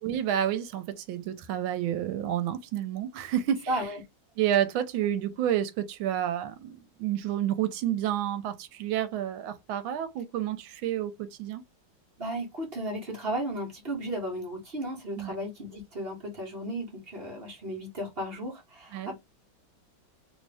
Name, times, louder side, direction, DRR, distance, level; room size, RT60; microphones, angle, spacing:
voice 1, 0.0-3.7 4.4-11.6 15.2-15.3 18.9-19.1, right 11 dB, 85° right, 1.4 m, -30 dB
voice 2, 3.7-4.0 12.2-19.1, right 1 dB, 35° right, 1.1 m, -34 dB
3.2 x 2.7 x 3.3 m
omnidirectional pair, 2.2 m